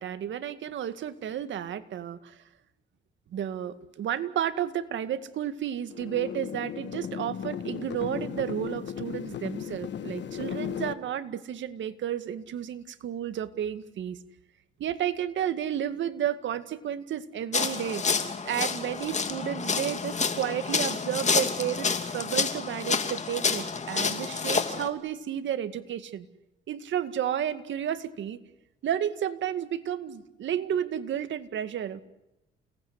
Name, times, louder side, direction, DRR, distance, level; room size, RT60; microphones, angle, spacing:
voice 1, 0.0-2.4 3.3-14.2 14.8-18.0 18.5-26.3 26.7-28.4 28.8-32.0, right 10 dB, 70° right, 10 dB, 2.1 m, -32 dB
sound 1, 5.9-10.9, left 9 dB, 65° left, 1.9 m, -36 dB
sound 2, 17.5-24.9, left 5 dB, 35° left, 2.8 m, -29 dB
29.5 x 19.0 x 9.6 m, 0.90 s
cardioid pair, 90°, 20 cm